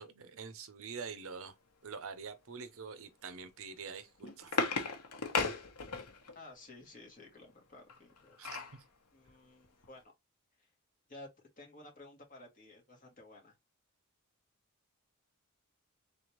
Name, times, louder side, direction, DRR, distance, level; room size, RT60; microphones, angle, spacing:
voice 1, 0.0-1.5 1.8-4.6 8.4-8.6, right 5 dB, 65° right, 0.7 m, -45 dB
sound 1, 3.9-6.4 7.9-8.8 9.3-9.4 9.6-9.9, left 4 dB, 80° left, 1.1 m, -35 dB
voice 2, 6.4-8.4 9.1-10.1 11.1-11.3 11.6-13.6, left 2 dB, 35° left, 2.0 m, -54 dB
4.0 x 3.5 x 3.0 m
head